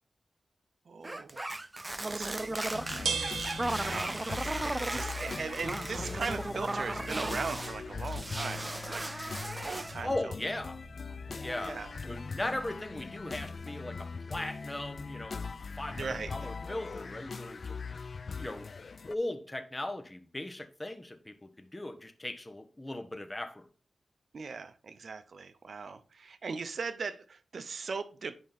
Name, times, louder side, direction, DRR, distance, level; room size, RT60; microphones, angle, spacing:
voice 1, 0.9-1.4 1.9-9.1 9.6-10.3 11.6-11.9 15.9-16.5 24.3-28.4, right 4 dB, 70° right, 0.7 m, -39 dB
sound 1, 1.0-7.8 8.0-10.0, right 2 dB, 25° right, 0.3 m, -36 dB
sound 2, 2.1-13.6, right 5 dB, 90° right, 1.3 m, -44 dB
sound 3, 2.7-19.1, left 5 dB, 55° left, 0.4 m, -41 dB
voice 2, 10.0-10.8 11.4-11.8 12.1-16.0 16.3-17.8 18.4-18.7 19.1-23.6, left 1 dB, 20° left, 1.1 m, -38 dB
8.9 x 5.2 x 4.1 m
wide cardioid pair, 75°, 0 cm